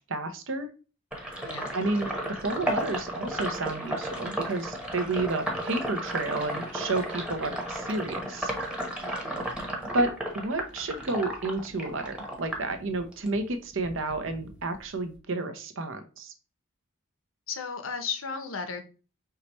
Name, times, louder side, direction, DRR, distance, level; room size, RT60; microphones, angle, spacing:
voice 1, 0.1-0.7 1.7-2.1 2.4-8.5 9.9-10.1 10.3-16.3, right 2 dB, 65° right, 7 dB, 0.8 m, -31 dB
Sink (filling or washing), 1.1-13.4 13.7-15.1, right 1 dB, 5° right, 1.0 m, -34 dB
voice 2, 9.0-9.5 17.5-18.8, left 5 dB, 65° left, 8 dB, 0.8 m, -35 dB
4.7 x 3.1 x 2.9 m, 0.35 s
head